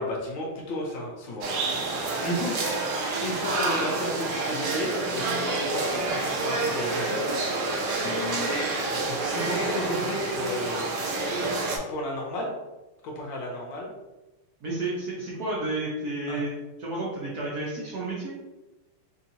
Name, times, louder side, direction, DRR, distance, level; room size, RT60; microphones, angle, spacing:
voice 1, 0.0-2.6 3.2-7.2 8.0-10.9 11.9-12.6 13.0-13.9 16.3-16.4, left 1 dB, 70° left, -2 dB, 1.3 m, -33 dB
sound 1, 1.4-11.8, right 3 dB, 75° right, 1.5 m, -28 dB
voice 2, 14.6-16.5 16.8-18.3, right 2 dB, 55° right, -6 dB, 1.1 m, -31 dB
4.2 x 2.8 x 2.8 m, 1.1 s
omnidirectional pair, 2.4 m